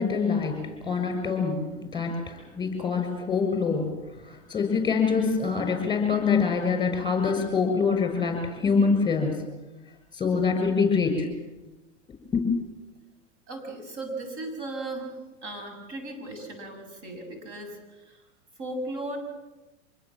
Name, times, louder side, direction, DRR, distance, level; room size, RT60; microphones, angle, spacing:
voice 1, 0.0-9.4 10.1-11.3 12.3-12.5, left 5 dB, 10° left, 6 dB, 6.6 m, -25 dB
voice 2, 13.5-15.1 15.4-18.2 18.6-19.2, right 2 dB, 50° right, 4 dB, 7.1 m, -36 dB
25.5 x 20.5 x 7.7 m, 1.1 s
hypercardioid pair, 115°, 38 cm